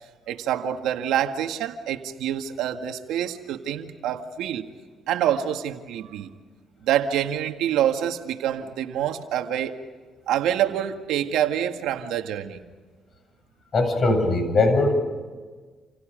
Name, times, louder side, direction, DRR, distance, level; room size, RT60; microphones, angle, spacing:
voice 1, 0.3-4.7 5.1-6.3 6.8-9.8 10.3-12.6, right 10 dB, 90° right, 5 dB, 2.0 m, -26 dB
voice 2, 13.7-14.9, left 2 dB, 45° left, 7 dB, 7.9 m, -20 dB
29.5 x 29.0 x 5.3 m, 1.4 s
cardioid pair, 90°, 0 cm